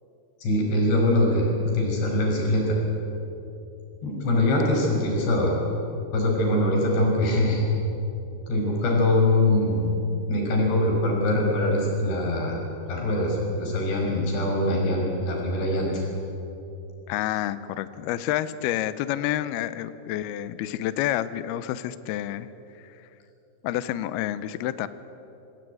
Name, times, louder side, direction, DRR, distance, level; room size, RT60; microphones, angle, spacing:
voice 1, 0.4-2.8 4.0-5.6 6.1-7.6 8.5-9.9 10.3-12.6 12.9-16.0, left 1 dB, 60° left, -1 dB, 7.6 m, -23 dB
voice 2, 17.1-22.5 22.8-22.9 23.6-24.9, left 13 dB, 85° left, 14 dB, 2.2 m, -29 dB
26.0 x 19.0 x 9.4 m, 2.9 s
omnidirectional pair, 5.5 m